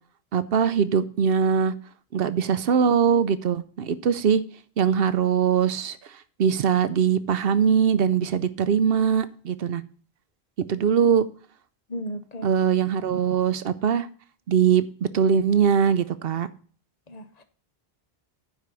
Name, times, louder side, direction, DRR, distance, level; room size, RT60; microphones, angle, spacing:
voice 1, 0.3-1.7 2.1-4.4 4.8-6.1 6.4-9.8 10.7-11.2 12.4-14.1 14.5-16.5, right 7 dB, 70° right, 0.8 m, -22 dB
voice 2, 11.9-12.5 17.1-17.4, equal, 45° left, 0.8 m, -35 dB
9.8 x 4.5 x 6.8 m
omnidirectional pair, 1.0 m